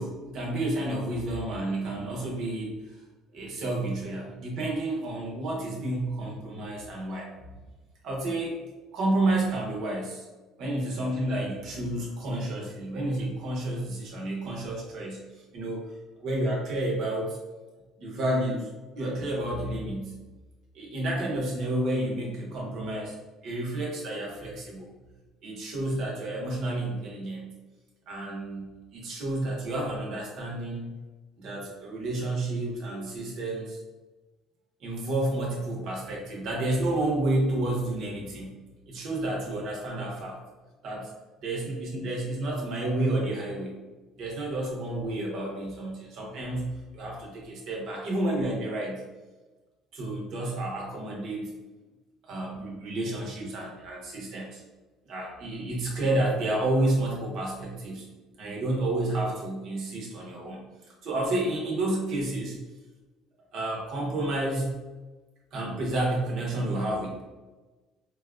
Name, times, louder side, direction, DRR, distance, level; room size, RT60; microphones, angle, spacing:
voice 1, 0.0-2.7 3.3-7.3 8.0-8.6 8.9-10.3 10.6-15.2 15.5-15.8 16.2-17.4 18.0-18.7 19.0-20.1 20.7-23.1 23.4-24.9 25.4-27.5 28.1-30.9 31.4-33.8 34.8-38.5 38.9-40.4 40.8-41.1 41.4-43.7 44.2-49.0 49.9-51.5 52.2-54.6 55.1-58.0 58.4-60.6 61.0-62.6 63.5-64.8 65.5-67.2, right 1 dB, 60° right, -2 dB, 1.0 m, -30 dB
3.9 x 2.3 x 2.5 m, 1.2 s
cardioid pair, 115°, 0 cm